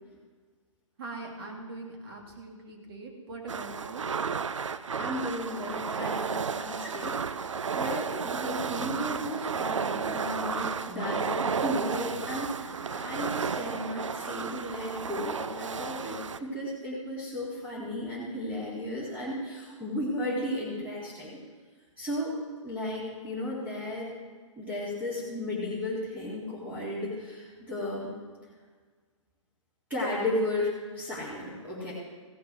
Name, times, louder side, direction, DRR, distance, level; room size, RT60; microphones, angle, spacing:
voice 1, 1.0-4.1, right 3 dB, 50° right, 0 dB, 3.0 m, -42 dB
sound 1, 3.5-16.4, right 6 dB, 70° right, 0.6 m, -33 dB
voice 2, 5.0-21.4 22.0-22.3 22.6-24.1 24.6-28.1 29.9-31.9, left 1 dB, 10° right, -8 dB, 3.2 m, -34 dB
16.0 x 6.5 x 6.4 m, 1.5 s
figure-of-eight pair, 125°, 16 cm